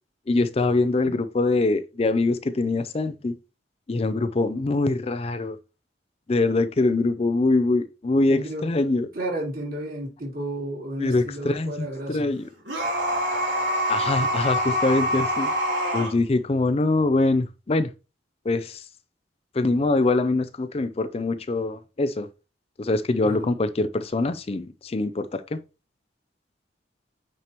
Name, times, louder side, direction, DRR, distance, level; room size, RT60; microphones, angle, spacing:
voice 1, 0.3-3.4 3.9-5.6 6.3-9.1 11.0-12.4 13.9-15.5 15.9-17.9 18.5-18.9 19.5-22.3 22.8-25.6, left 2 dB, 30° left, 0.4 m, -23 dB
voice 2, 8.3-8.9 9.1-12.3 23.2-23.5, right 1 dB, 50° right, 3.4 m, -32 dB
sound 1, 12.7-16.1, equal, 75° right, 3.3 m, -25 dB
8.9 x 4.6 x 2.9 m
head